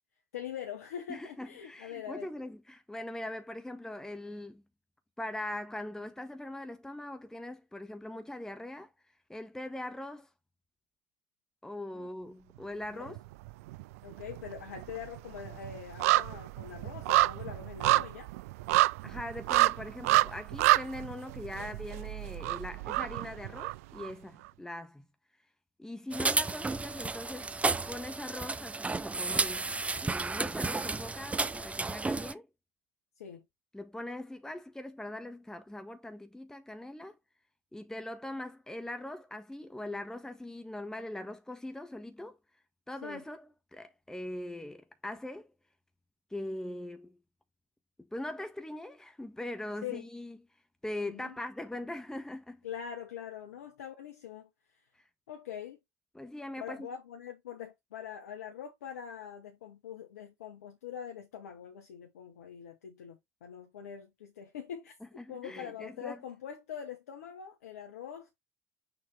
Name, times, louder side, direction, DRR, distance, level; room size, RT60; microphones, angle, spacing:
voice 1, 0.3-2.3 12.0-12.1 13.0-13.2 14.0-18.3 33.2-33.4 43.0-43.2 49.8-50.0 51.1-51.3 52.6-54.5 55.3-55.8 56.6-68.4, left 8 dB, 80° left, 1.3 m, -43 dB
voice 2, 1.1-4.6 5.2-8.9 9.3-10.3 11.6-13.2 19.0-25.0 25.8-29.7 30.0-32.5 33.7-37.2 37.7-42.4 42.9-45.5 46.3-47.2 48.0-50.4 50.8-52.6 56.1-56.9 65.2-66.2, left 1 dB, 5° left, 1.5 m, -41 dB
sound 1, 13.1-13.8 14.1-24.1 24.4-24.5, right 18 dB, 70° right, 0.3 m, -28 dB
sound 2, 26.1-32.3, right 3 dB, 15° right, 0.7 m, -32 dB
6.7 x 4.5 x 3.3 m
hypercardioid pair, 60°, 8 cm